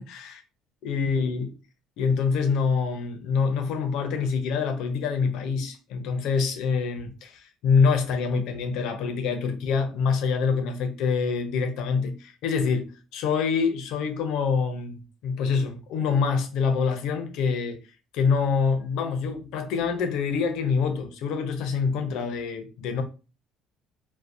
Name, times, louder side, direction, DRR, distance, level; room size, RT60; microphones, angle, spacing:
voice 1, 0.0-0.4 0.8-1.6 2.0-17.8 18.1-23.0, left 5 dB, 70° left, 0.5 m, -26 dB
2.6 x 2.1 x 2.4 m
supercardioid pair, 80°, 0 cm